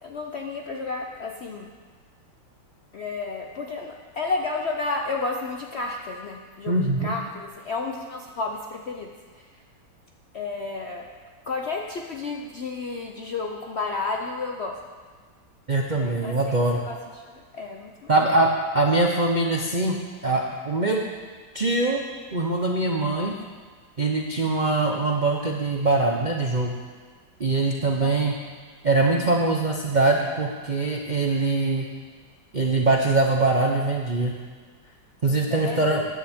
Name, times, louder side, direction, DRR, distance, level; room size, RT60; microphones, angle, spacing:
voice 1, 0.0-1.7 2.9-9.6 10.3-11.1 11.5-14.8 15.9-18.1 28.0-28.3 35.5-36.1, left 3 dB, 60° left, 2 dB, 0.7 m, -32 dB
voice 2, 6.7-7.1 15.7-16.8 18.1-18.5 18.7-20.0 20.2-21.0 21.5-22.0 22.3-23.3 24.0-26.8 27.4-28.3 28.8-31.9 32.5-34.3 35.2-36.0, right 2 dB, 50° right, 0 dB, 0.5 m, -22 dB
14.5 x 10.0 x 3.6 m, 1.5 s
omnidirectional pair, 1.9 m